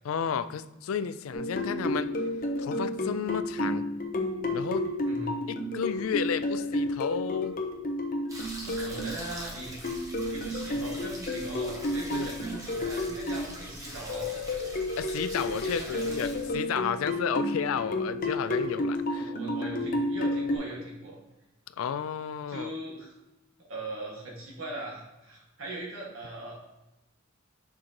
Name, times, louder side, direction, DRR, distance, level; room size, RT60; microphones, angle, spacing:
voice 1, 0.0-2.2 2.6-3.9 4.5-4.8 5.5-7.6 12.1-12.3 15.0-19.3 21.8-22.7, left 7 dB, 85° left, 14 dB, 0.4 m, -32 dB
sound 1, 1.3-9.1 9.8-13.5 14.1-20.6, left 1 dB, 45° left, 0.8 m, -31 dB
voice 2, 5.0-5.3 8.6-14.3 15.6-16.2 19.1-21.2 22.5-23.1 23.7-26.5, right 1 dB, 75° right, -2 dB, 1.8 m, -40 dB
wash hands razor, 8.3-16.5, equal, 15° right, 1.1 m, -43 dB
6.3 x 6.0 x 2.9 m, 1.0 s
head